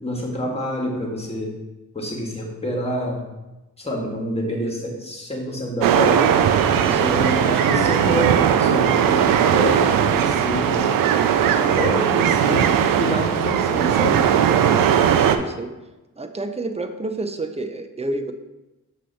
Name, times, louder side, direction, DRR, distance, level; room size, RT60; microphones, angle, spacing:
voice 1, 0.0-1.5 1.9-3.2 3.8-6.3 6.8-11.0 11.5-14.3, equal, 20° left, 0 dB, 1.6 m, -27 dB
sound 1, 5.8-15.4, right 8 dB, 90° right, 0.5 m, -18 dB
voice 2, 6.9-7.5 15.1-15.7 16.2-18.3, right 2 dB, 20° right, 7 dB, 0.5 m, -29 dB
6.1 x 2.9 x 5.6 m, 1.0 s
cardioid pair, 70°, 33 cm